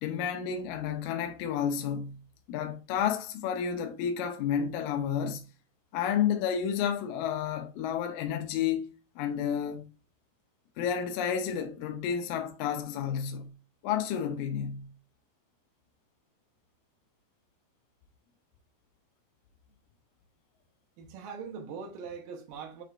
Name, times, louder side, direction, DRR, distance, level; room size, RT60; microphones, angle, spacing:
voice 1, 0.0-2.2 2.5-5.4 5.9-8.9 9.2-9.9 10.8-13.5 13.8-14.9, left 8 dB, 80° left, 1.8 m, -31 dB
voice 2, 21.0-22.8, right 5 dB, 80° right, 2.5 m, -41 dB
6.5 x 3.2 x 2.4 m
omnidirectional pair, 3.8 m